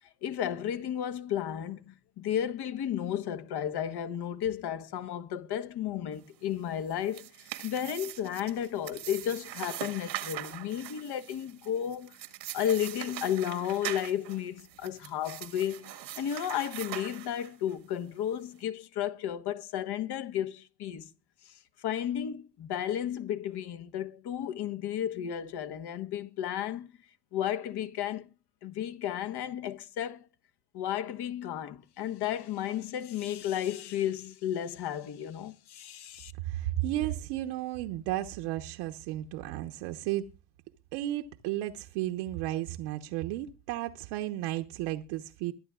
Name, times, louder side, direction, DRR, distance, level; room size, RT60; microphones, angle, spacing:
voice 1, 0.2-12.2 12.5-21.1 21.4-26.9 27.3-28.3 28.6-30.3 30.7-36.3, left 10 dB, 50° left, 1.4 m, -33 dB
sound 1, 6.8-17.7, right 14 dB, 90° right, 1.8 m, -42 dB
voice 2, 36.4-40.2 40.9-45.5, right 14 dB, 70° right, 1.2 m, -33 dB
23.0 x 11.0 x 2.4 m
hypercardioid pair, 70°, 50 cm